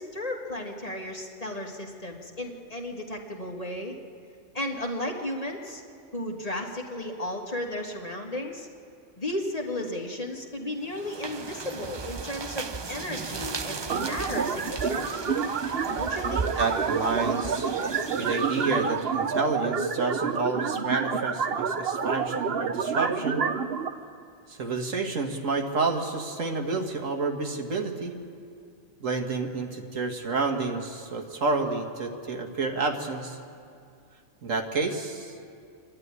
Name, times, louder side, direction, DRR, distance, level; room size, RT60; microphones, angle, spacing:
voice 1, 0.0-4.0 4.5-5.8 6.1-8.7 9.2-15.3 16.0-16.5, left 1 dB, 30° left, 0 dB, 1.9 m, -34 dB
sound 1, 10.8-19.2, right 4 dB, 35° right, 0.4 m, -36 dB
sound 2, 13.9-23.9, right 6 dB, 55° right, 1.0 m, -28 dB
voice 2, 16.6-17.8 18.1-23.4 24.5-28.1 29.0-33.4 34.4-35.3, right 3 dB, 75° right, 2 dB, 1.9 m, -29 dB
26.0 x 11.5 x 9.6 m, 2.4 s
omnidirectional pair, 1.3 m